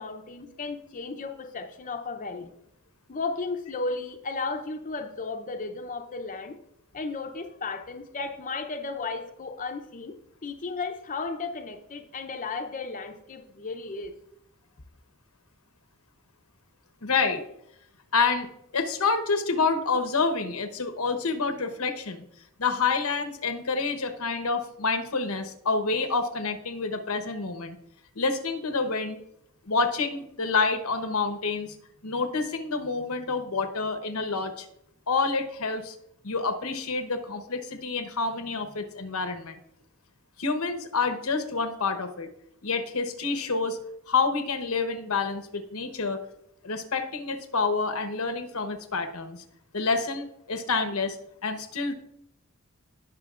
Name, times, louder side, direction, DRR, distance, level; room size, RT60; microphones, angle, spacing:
voice 1, 0.0-2.5 3.1-6.6 6.9-10.2 10.4-14.1, left 3 dB, 40° left, 5 dB, 0.7 m, -34 dB
voice 2, 17.0-17.4 18.1-22.2 22.6-27.8 28.1-29.2 29.7-31.8 32.0-34.7 35.1-35.9 36.2-39.6 40.4-42.3 42.6-43.8 44.1-46.2 46.6-49.4 49.7-51.2 51.4-51.9, left 4 dB, 85° left, 7 dB, 1.0 m, -28 dB
18.0 x 6.3 x 2.5 m, 0.78 s
head